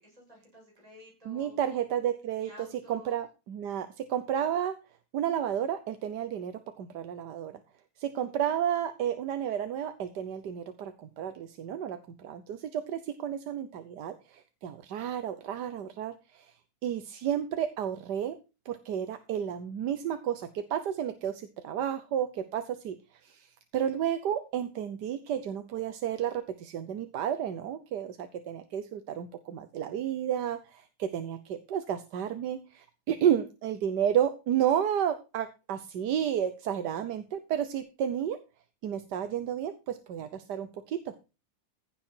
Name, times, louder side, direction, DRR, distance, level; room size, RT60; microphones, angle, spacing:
voice 1, 0.0-1.6 2.4-3.2, left 1 dB, 20° right, -3 dB, 7.9 m, -52 dB
voice 2, 1.2-4.8 5.1-7.6 8.0-16.5 16.8-18.4 18.6-38.4 38.8-41.1, right 9 dB, 90° right, 10 dB, 1.6 m, -32 dB
15.5 x 6.8 x 4.5 m, 0.30 s
omnidirectional pair, 1.7 m